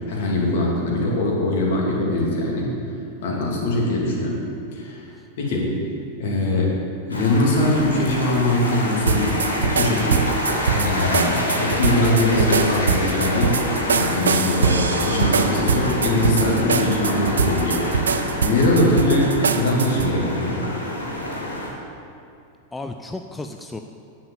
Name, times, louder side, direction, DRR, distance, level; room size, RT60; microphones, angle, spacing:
voice 1, 0.1-2.7 3.2-4.4 4.7-5.1 5.4-5.8 6.2-6.7 7.1-10.3 10.7-17.8 18.4-20.6, left 1 dB, 55° left, -3 dB, 2.7 m, -22 dB
sound 1, 7.1-21.7, left 1 dB, 80° left, 1.8 m, -27 dB
sound 2, 9.1-20.1, right 6 dB, 70° right, 0.5 m, -24 dB
voice 2, 22.7-23.8, left 2 dB, 10° left, 5 dB, 0.5 m, -35 dB
10.0 x 7.4 x 7.3 m, 2.5 s
figure-of-eight pair, 90°, 0 cm